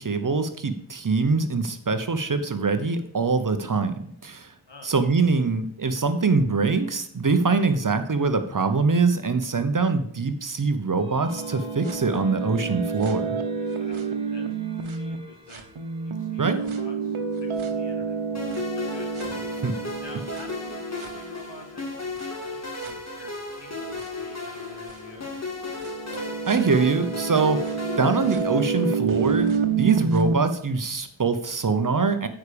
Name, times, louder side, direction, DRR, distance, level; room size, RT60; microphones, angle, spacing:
voice 1, 0.0-4.5 4.8-13.4 16.4-16.6 19.5-19.7 26.1-29.5 29.8-32.3, right 4 dB, 40° right, 9 dB, 0.9 m, -24 dB
sound 1, 11.0-18.6, equal, 10° right, 1.8 m, -49 dB
sound 2, 11.3-15.2 15.5-21.6 22.2-22.3 22.8-22.9 24.0-24.1 24.9-25.0 25.8-30.3, right 5 dB, 80° right, 1.0 m, -29 dB
voice 2, 13.7-14.5 14.8-15.7 16.0-19.1 20.0-25.4, left 2 dB, 60° left, 3 dB, 2.1 m, -48 dB
sound 3, 18.3-29.0, left 3 dB, 30° left, 2.4 m, -35 dB
9.3 x 4.9 x 6.9 m, 0.66 s
wide cardioid pair, 90°, 48 cm